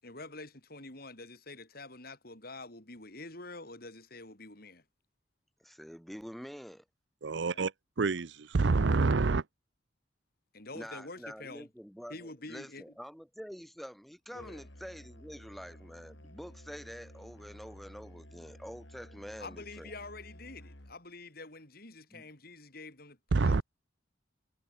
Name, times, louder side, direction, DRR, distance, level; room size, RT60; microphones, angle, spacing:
voice 1, 0.0-4.8 7.3-7.6 10.5-11.7 12.1-12.9 14.3-14.6 19.4-23.6, left 2 dB, 50° left, 5.5 m, -47 dB
voice 2, 5.6-6.8 10.7-19.9 22.1-22.2, equal, ahead, 3.2 m, -46 dB
voice 3, 7.2-7.7 8.0-9.4 23.3-23.6, right 3 dB, 65° right, 0.6 m, -27 dB
Musical instrument, 14.3-21.1, equal, 70° left, 7.3 m, -53 dB
head